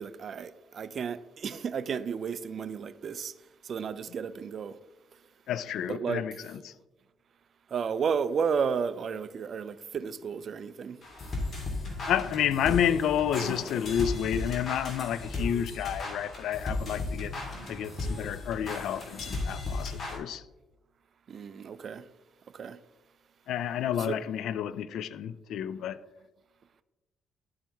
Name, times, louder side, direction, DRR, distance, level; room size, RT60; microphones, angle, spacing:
voice 1, 0.0-3.3 3.6-4.8 5.9-6.2 7.7-11.0 21.3-22.0 22.5-22.8 24.1-24.2, right 6 dB, 55° right, 0.4 m, -32 dB
voice 2, 5.5-6.7 12.1-17.3 17.7-20.4 23.5-26.0, left 9 dB, 80° left, 0.3 m, -30 dB
sound 1, 11.0-20.2, left 2 dB, 45° left, 2.0 m, -35 dB
11.0 x 4.5 x 3.4 m
cardioid pair, 90°, 0 cm